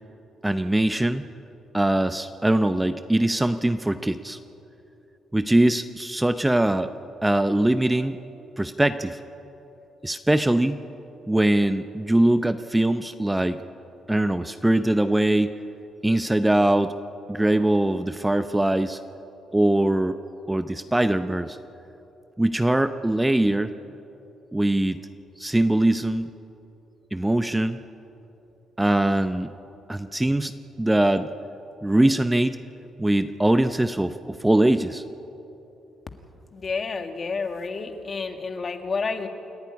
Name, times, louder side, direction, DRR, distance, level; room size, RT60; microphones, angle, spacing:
voice 1, 0.4-1.2 1.7-4.4 5.3-6.9 7.2-8.2 8.6-9.2 10.0-10.8 11.3-13.6 14.1-15.6 16.0-16.9 17.3-19.0 19.5-20.2 20.5-21.6 22.4-23.7 24.5-25.0 25.4-26.3 27.1-27.8 28.8-29.5 29.9-31.3 31.8-32.6 33.0-35.0, right 1 dB, 10° right, 10 dB, 0.7 m, -22 dB
voice 2, 36.5-39.3, left 4 dB, 40° left, 6 dB, 1.8 m, -30 dB
28.0 x 11.5 x 9.8 m, 2.9 s
cardioid pair, 90°, 0 cm